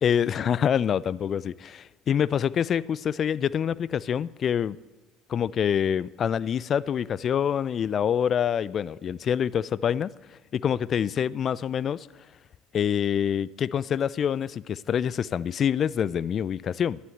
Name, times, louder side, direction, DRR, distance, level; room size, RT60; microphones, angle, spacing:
voice 1, 0.0-4.8 5.3-10.1 10.5-12.1 12.7-17.0, left 8 dB, 45° left, 21 dB, 0.4 m, -26 dB
11.5 x 10.5 x 7.9 m, 1.2 s
hypercardioid pair, 75°, 0 cm